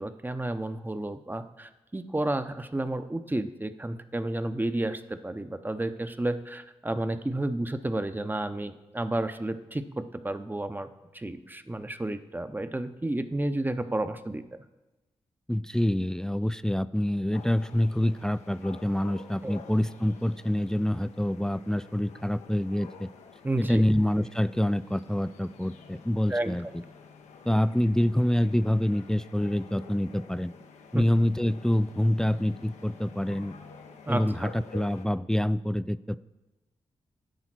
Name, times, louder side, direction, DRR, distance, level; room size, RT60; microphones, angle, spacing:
voice 1, 0.0-10.9 11.1-14.4 19.4-19.6 23.4-23.9 26.3-26.7 30.9-31.0 34.1-34.5, right 1 dB, 15° right, 10 dB, 0.7 m, -31 dB
voice 2, 15.5-23.1 23.6-26.7 27.5-30.5 30.9-33.6 34.1-36.2, left 1 dB, 5° left, 16 dB, 0.3 m, -26 dB
sound 1, 17.3-35.1, left 5 dB, 90° left, 0.7 m, -50 dB
10.5 x 3.9 x 6.0 m, 1.1 s
supercardioid pair, 45°, 11 cm